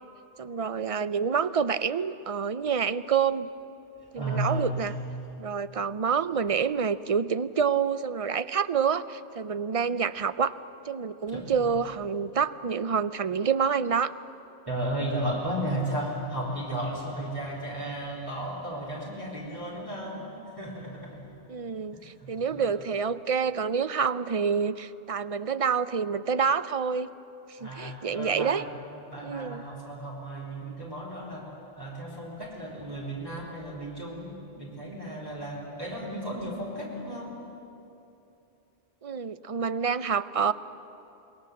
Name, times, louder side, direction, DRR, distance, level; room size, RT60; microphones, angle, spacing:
voice 1, 0.4-3.5 4.1-4.9 5.4-10.6 10.9-14.1 21.5-27.1 27.6-28.6 29.2-29.6 39.0-40.5, right 6 dB, 40° right, 14 dB, 0.6 m, -27 dB
voice 2, 4.1-4.9 11.3-11.7 14.7-21.3 21.9-22.7 27.6-28.7 29.1-37.4, right 1 dB, 20° right, -5 dB, 3.9 m, -34 dB
28.0 x 21.0 x 7.8 m, 2.9 s
omnidirectional pair, 1.1 m